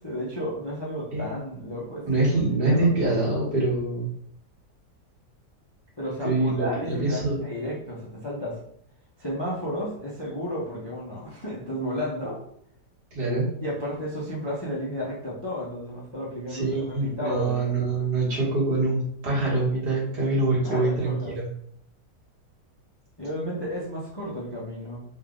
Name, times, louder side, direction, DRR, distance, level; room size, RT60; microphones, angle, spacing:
voice 1, 0.0-2.1 2.5-3.3 6.0-8.6 9.2-12.4 13.6-17.7 20.6-21.4 23.2-25.0, equal, 30° left, -5 dB, 0.5 m, -32 dB
voice 2, 2.1-4.1 6.2-7.4 13.1-13.5 16.5-21.5, right 2 dB, 80° right, -5 dB, 2.1 m, -25 dB
4.0 x 2.4 x 3.7 m, 0.67 s
omnidirectional pair, 1.8 m